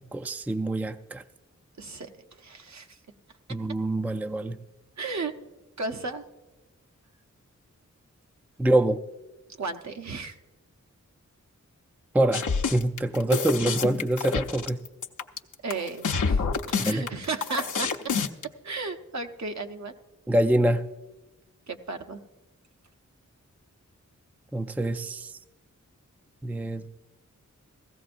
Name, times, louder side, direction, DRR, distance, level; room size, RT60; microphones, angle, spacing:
voice 1, 0.1-1.2 3.5-4.6 8.6-9.0 12.1-14.8 16.8-17.0 20.3-20.8 24.5-25.3 26.4-26.9, right 1 dB, 5° right, 8 dB, 0.4 m, -25 dB
voice 2, 1.8-3.0 3.5-3.6 5.0-5.3 5.8-6.2 9.6-10.4 15.6-18.0 18.6-19.9 21.7-22.2, right 3 dB, 65° right, 6 dB, 0.8 m, -34 dB
sound 1, 12.3-18.4, left 5 dB, 80° left, 0.7 m, -27 dB
17.0 x 14.5 x 2.5 m, 1.1 s
wide cardioid pair, 80°, 30 cm